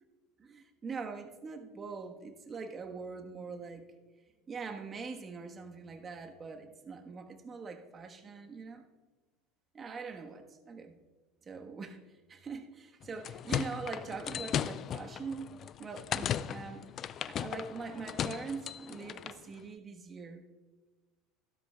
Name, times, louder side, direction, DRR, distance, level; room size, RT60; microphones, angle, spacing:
voice 1, 0.4-3.8 4.5-8.8 9.7-11.0 11.4-12.0 12.3-15.5 15.8-16.9 17.3-20.4, right 4 dB, 30° right, 1.3 m, -43 dB
sound 1, 13.0-19.4, left 9 dB, 45° left, 0.4 m, -37 dB
13.5 x 12.5 x 2.3 m
hypercardioid pair, 80°, 0 cm